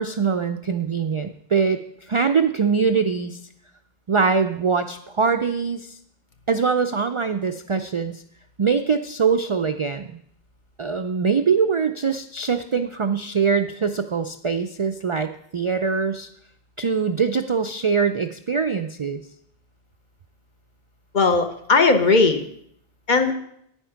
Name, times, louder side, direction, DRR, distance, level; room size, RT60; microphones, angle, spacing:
voice 1, 0.0-3.4 4.1-6.0 6.5-8.2 8.6-10.1 10.8-16.3 16.8-19.2, right 5 dB, 50° right, 8 dB, 0.4 m, -23 dB
voice 2, 21.1-22.5 23.1-23.3, left 3 dB, 50° left, 7 dB, 1.0 m, -18 dB
9.1 x 8.9 x 5.8 m, 0.72 s
omnidirectional pair, 1.0 m